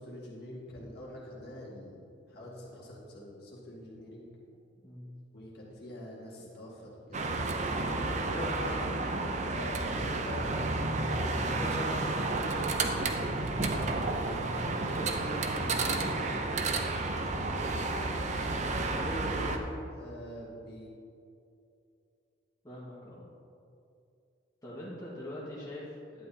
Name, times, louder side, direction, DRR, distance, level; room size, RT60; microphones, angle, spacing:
voice 1, 0.0-1.9 2.3-4.3 5.3-7.2 7.8-9.0 9.5-9.7 10.0-10.5 11.2-13.0 13.3-14.0 14.8-16.8 18.9-19.6 19.9-20.9, equal, 50° left, -5 dB, 1.9 m, -43 dB
voice 2, 4.8-5.1 18.7-19.0 22.6-23.3 24.6-26.3, left 1 dB, 15° left, -8 dB, 1.5 m, -43 dB
sound 1, 7.1-19.6, right 2 dB, 35° right, 0.6 m, -31 dB
11.0 x 9.6 x 2.8 m, 2.6 s
head